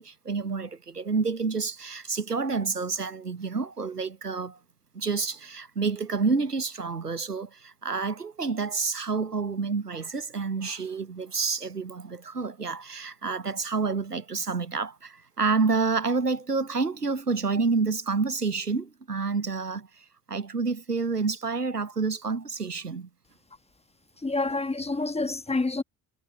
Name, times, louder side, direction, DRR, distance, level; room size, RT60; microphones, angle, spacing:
voice 1, 0.0-4.6 4.9-23.1, right 4 dB, 90° right, 1.0 m, -29 dB
voice 2, 24.2-25.8, left 3 dB, 15° left, 1.3 m, -28 dB
figure-of-eight pair, 45°, 45 cm